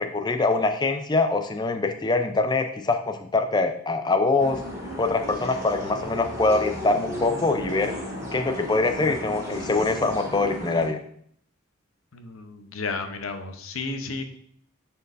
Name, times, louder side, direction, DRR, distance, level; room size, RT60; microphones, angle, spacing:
voice 1, 0.0-4.6 5.0-7.9 8.3-11.0, left 3 dB, 20° left, 6 dB, 0.5 m, -24 dB
sound 1, 4.4-10.9, equal, 15° right, 1.6 m, -35 dB
voice 2, 12.1-14.2, left 3 dB, 90° left, 7 dB, 0.8 m, -32 dB
9.6 x 4.5 x 2.6 m, 0.65 s
head